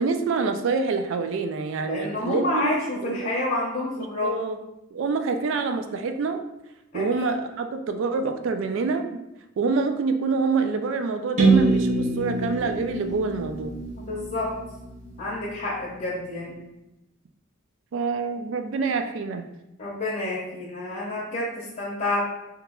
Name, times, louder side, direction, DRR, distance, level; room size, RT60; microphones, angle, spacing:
voice 1, 0.0-2.8 3.0-3.3 4.0-4.6 4.9-6.4 6.9-9.2 9.6-13.8 17.9-19.5, right 4 dB, 65° right, 7 dB, 0.3 m, -26 dB
voice 2, 1.8-4.3 6.9-7.0 14.0-14.5 15.2-16.6 19.8-22.2, left 2 dB, 40° left, -5 dB, 0.6 m, -28 dB
sound 1, 11.4-15.2, right 3 dB, 35° right, 0.7 m, -24 dB
3.0 x 2.3 x 3.5 m, 0.92 s
head